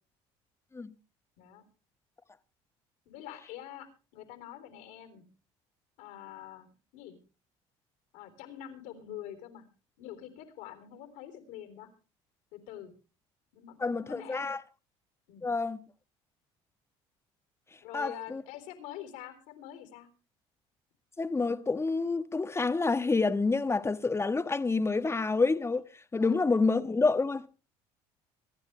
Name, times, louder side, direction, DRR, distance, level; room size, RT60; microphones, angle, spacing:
voice 1, 3.1-3.9 4.1-5.2 6.0-7.2 8.1-9.7 10.0-11.9 12.5-12.9 13.5-14.5 15.3-15.5 17.8-20.1 26.2-26.4, left 11 dB, 80° left, 3.6 m, -45 dB
voice 2, 13.8-14.6 15.4-15.8 17.9-18.4 21.2-25.8 26.1-27.5, left 3 dB, 20° left, 1.3 m, -28 dB
24.0 x 10.5 x 3.3 m
supercardioid pair, 80°, 13 cm